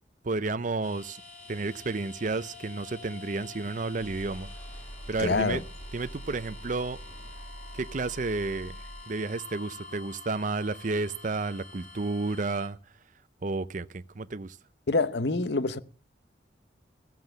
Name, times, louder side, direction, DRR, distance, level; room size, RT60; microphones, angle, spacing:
voice 1, 0.2-1.2 1.5-4.5 5.1-5.6 5.9-7.0 7.7-12.8 13.4-14.6, right 3 dB, 45° right, 0.6 m, -31 dB
sound 1, 0.8-12.7, left 4 dB, 45° left, 2.3 m, -48 dB
sound 2, 1.4-9.2, right 1 dB, 30° left, 2.9 m, -46 dB
voice 2, 5.2-5.6 14.9-15.8, left 3 dB, 65° left, 0.8 m, -26 dB
15.0 x 7.7 x 7.7 m
head